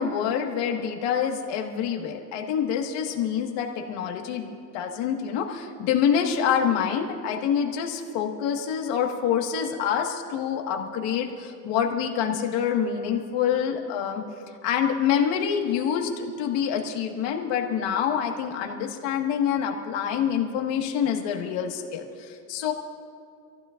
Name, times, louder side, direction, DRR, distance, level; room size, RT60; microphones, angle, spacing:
voice 1, 0.0-14.2 14.6-22.7, left 8 dB, 80° left, 2 dB, 1.9 m, -26 dB
27.0 x 15.0 x 2.6 m, 2.3 s
cardioid pair, 160°, 44 cm